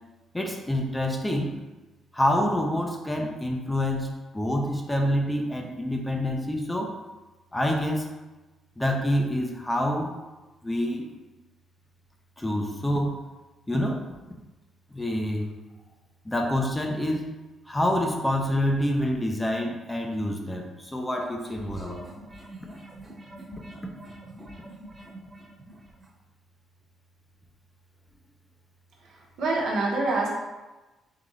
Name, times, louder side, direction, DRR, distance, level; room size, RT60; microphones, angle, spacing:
voice 1, 0.3-1.5 2.1-7.0 7.5-8.1 8.8-10.2 10.6-11.1 12.4-13.2 13.7-14.0 14.9-15.5 16.2-17.3 17.7-22.1, left 1 dB, 10° left, 1 dB, 0.6 m, -27 dB
sound 1, 21.2-26.1, right 1 dB, 15° right, 1.2 m, -45 dB
voice 2, 29.0-30.3, right 2 dB, 75° right, -3 dB, 1.1 m, -26 dB
3.9 x 3.5 x 3.2 m, 1.1 s
cardioid pair, 90°, 0 cm